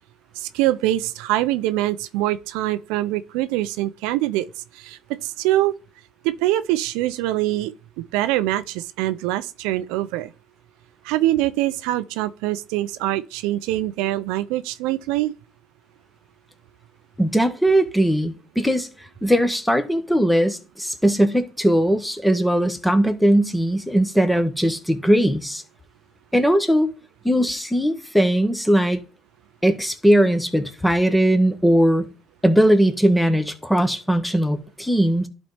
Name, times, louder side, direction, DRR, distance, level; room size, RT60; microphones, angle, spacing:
voice 1, 0.4-4.5 4.7-5.7 6.2-7.7 8.1-10.3 11.0-15.3, right 15 dB, 85° right, 0.4 m, -24 dB
voice 2, 17.2-18.9 19.2-25.6 26.3-26.9 27.2-29.0 29.6-32.1 32.4-35.3, right 1 dB, 5° left, 1.3 m, -19 dB
11.5 x 4.1 x 3.3 m
supercardioid pair, 85°, 0 cm